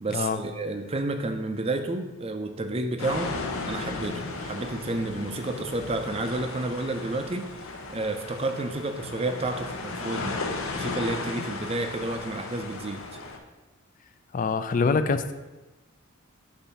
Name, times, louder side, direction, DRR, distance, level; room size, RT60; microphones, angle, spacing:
voice 1, 0.0-3.3 3.7-7.5 7.9-10.4 10.7-13.0, right 2 dB, 30° right, 7 dB, 0.5 m, -30 dB
sound 1, 3.0-13.4, left 3 dB, 85° left, 0.7 m, -35 dB
voice 2, 14.3-15.3, left 4 dB, 40° left, 10 dB, 0.3 m, -24 dB
6.8 x 2.7 x 5.7 m, 1.1 s
head